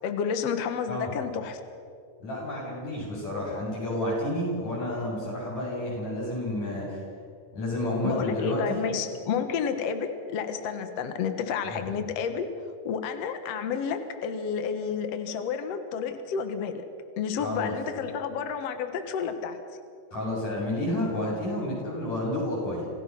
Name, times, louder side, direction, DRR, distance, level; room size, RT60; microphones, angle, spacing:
voice 1, 0.0-1.6 8.0-12.5 12.8-16.8 17.2-19.6, left 7 dB, 85° left, 8 dB, 1.4 m, -30 dB
voice 2, 2.2-7.0 7.5-8.8 11.6-11.8 17.4-17.7 20.1-22.9, left 1 dB, 40° left, -5 dB, 9.0 m, -30 dB
27.0 x 16.5 x 6.1 m, 2.3 s
omnidirectional pair, 4.8 m